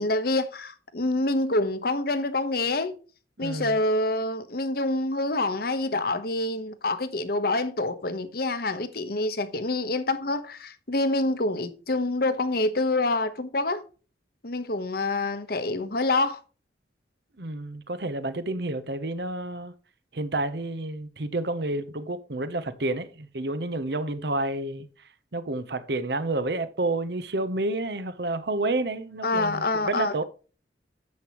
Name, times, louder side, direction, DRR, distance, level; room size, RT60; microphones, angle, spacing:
voice 1, 0.0-3.0 3.4-13.8 14.4-16.4 29.2-30.1, left 2 dB, 60° left, 1.1 m, -26 dB
voice 2, 3.4-3.8 17.4-19.7 20.1-24.9 25.3-30.2, right 2 dB, 65° right, 0.9 m, -30 dB
10.5 x 7.8 x 3.0 m
head